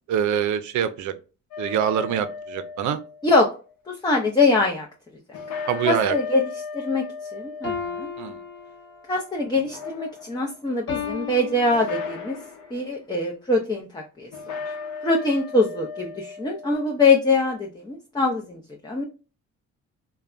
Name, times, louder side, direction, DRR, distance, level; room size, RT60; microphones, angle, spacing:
voice 1, 0.1-1.1 1.6-3.0 5.7-6.1 8.2-8.4, right 8 dB, 70° right, 11 dB, 0.5 m, -24 dB
sound 1, 1.5-3.6 5.3-9.1 9.6-10.6 11.7-12.8 14.3-17.0, left 5 dB, 75° left, 0.8 m, -36 dB
voice 2, 3.9-4.9 5.8-6.5 6.7-7.0 7.3-7.7 8.0-8.1 9.1-12.4 12.7-14.3 14.6-14.7 15.0-19.0, left 3 dB, 15° left, 0 dB, 0.5 m, -23 dB
sound 2, 7.6-9.2 10.9-12.4, left 6 dB, 40° left, 1.0 m, -34 dB
3.2 x 2.2 x 2.4 m, 0.34 s
cardioid pair, 90°, 30 cm